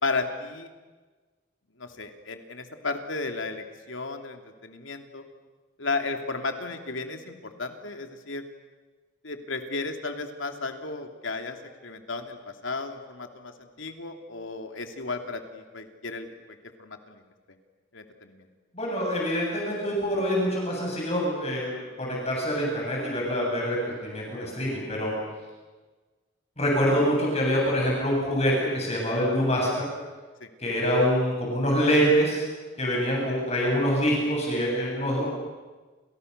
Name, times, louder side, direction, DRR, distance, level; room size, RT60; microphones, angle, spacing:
voice 1, 0.0-0.7 1.8-5.2 5.8-8.4 9.2-17.2 17.9-18.5 25.2-25.3 30.4-30.5, left 3 dB, 90° left, 5 dB, 3.0 m, -34 dB
voice 2, 18.7-25.1 26.6-29.9 30.6-32.4 32.8-35.3, equal, 35° left, -2 dB, 7.8 m, -25 dB
30.0 x 28.5 x 6.8 m, 1.3 s
head